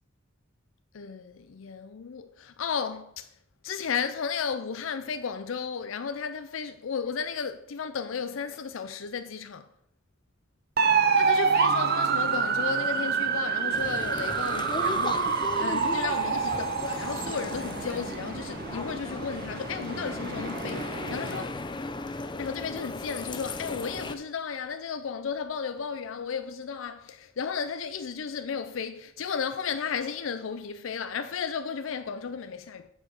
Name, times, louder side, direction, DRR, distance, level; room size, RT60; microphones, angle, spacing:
voice 1, 0.9-3.4 3.6-9.7 11.1-21.5 22.4-32.9, left 6 dB, 70° left, 0.5 m, -34 dB
sound 1, 10.8-21.5, right 5 dB, 50° right, 0.6 m, -27 dB
sound 2, 13.7-24.1, left 2 dB, 20° left, 0.6 m, -37 dB
8.7 x 5.0 x 6.0 m
head